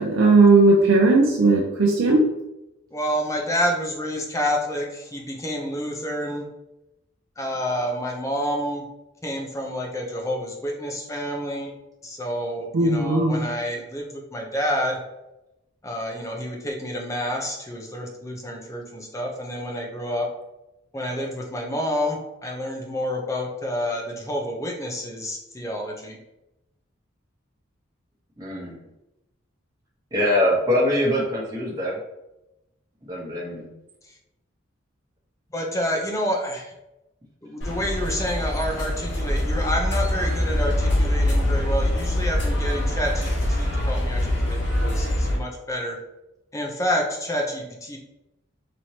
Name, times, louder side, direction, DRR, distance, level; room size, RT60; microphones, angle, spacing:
voice 1, 0.0-2.3 12.7-13.4, right 3 dB, 80° right, -1 dB, 0.5 m, -17 dB
voice 2, 2.9-6.5 7.4-8.9 9.2-11.7 12.0-15.0 15.8-20.3 20.9-26.2 34.0-34.1 35.5-36.7 37.4-46.0 46.5-48.0, equal, 15° left, 0 dB, 0.6 m, -28 dB
voice 3, 28.4-28.7 30.1-32.0 33.1-33.7, left 1 dB, 20° right, -5 dB, 0.9 m, -23 dB
sound 1, 37.6-45.4, left 1 dB, 60° left, 1.3 m, -24 dB
4.2 x 3.1 x 2.8 m, 0.93 s
head